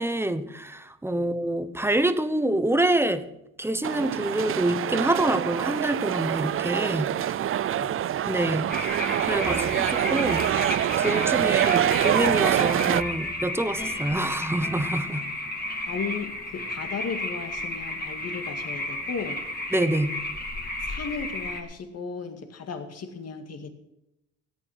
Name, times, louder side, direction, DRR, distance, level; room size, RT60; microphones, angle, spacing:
voice 1, 0.0-3.3 3.6-7.1 8.3-10.4 11.0-15.2 19.7-20.2, right 1 dB, 10° right, 11 dB, 1.1 m, -26 dB
sound 1, 3.8-13.0, right 11 dB, 45° right, 0.5 m, -25 dB
sound 2, 8.7-21.6, left 1 dB, 30° left, 2.9 m, -33 dB
sound 3, 8.9-17.1, left 2 dB, 15° left, 2.3 m, -44 dB
voice 2, 11.1-11.6 15.8-19.4 20.9-23.7, left 5 dB, 55° left, 6 dB, 2.1 m, -35 dB
15.0 x 8.8 x 6.5 m, 0.88 s
cardioid pair, 90°, 30 cm